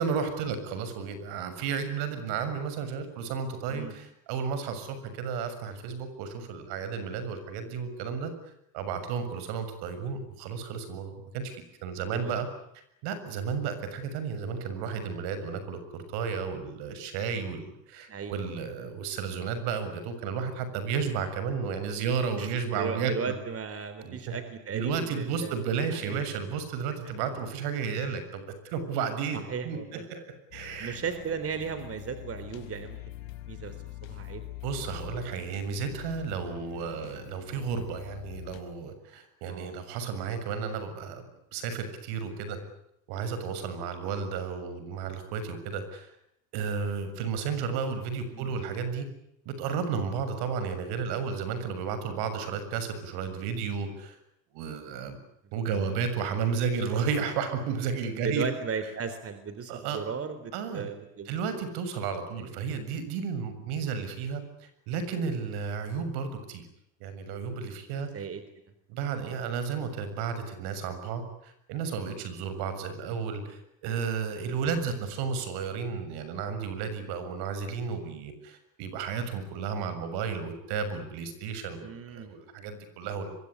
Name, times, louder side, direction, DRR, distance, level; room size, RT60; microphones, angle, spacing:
voice 1, 0.0-8.3 8.7-12.5 13.0-23.3 24.0-24.2 24.7-29.8 30.1-30.2 30.5-31.0 34.6-42.6 43.1-46.1 46.5-49.1 49.5-54.2 54.5-55.2 55.5-58.5 59.7-60.0 60.5-60.9 61.3-66.7 67.0-68.1 68.9-83.3, right 6 dB, 70° right, 10 dB, 7.1 m, -33 dB
voice 2, 12.1-12.4 18.1-18.4 22.4-26.2 29.3-30.1 30.8-33.0 33.5-34.5 39.5-39.8 48.3-48.6 55.8-56.0 58.1-61.3 62.4-62.6 68.1-68.4 81.8-82.4, right 6 dB, 35° right, 11 dB, 3.6 m, -36 dB
sound 1, 30.5-38.6, left 15 dB, 80° left, 4.9 m, -44 dB
24.5 x 23.0 x 9.7 m, 0.78 s
supercardioid pair, 95°, 41 cm